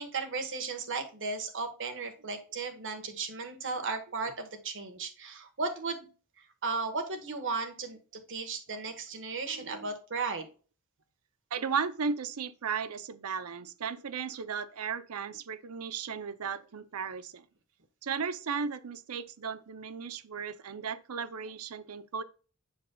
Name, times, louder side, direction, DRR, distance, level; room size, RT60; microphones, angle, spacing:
voice 1, 0.0-6.1 6.4-10.5, right 4 dB, 60° right, 1.3 m, -35 dB
voice 2, 9.4-9.9 11.5-17.5 18.0-22.2, right 6 dB, 75° right, 0.6 m, -35 dB
7.2 x 6.2 x 2.3 m
head